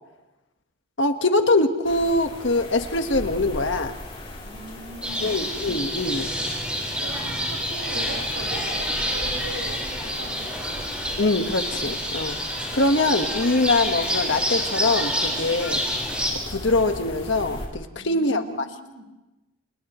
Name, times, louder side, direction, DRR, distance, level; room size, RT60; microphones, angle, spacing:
voice 1, 1.0-3.9 5.2-6.3 11.2-12.3 12.7-15.8 16.5-18.7, left 2 dB, 65° left, 6 dB, 1.5 m, -23 dB
sound 1, 1.8-17.7, left 1 dB, 30° left, 3.3 m, -39 dB
voice 2, 4.4-5.4 7.0-10.8 18.0-19.0, right 1 dB, 90° right, 1 dB, 5.1 m, -39 dB
sound 2, 5.0-16.3, equal, 5° right, 4.7 m, -28 dB
30.0 x 28.5 x 3.1 m, 1.0 s
head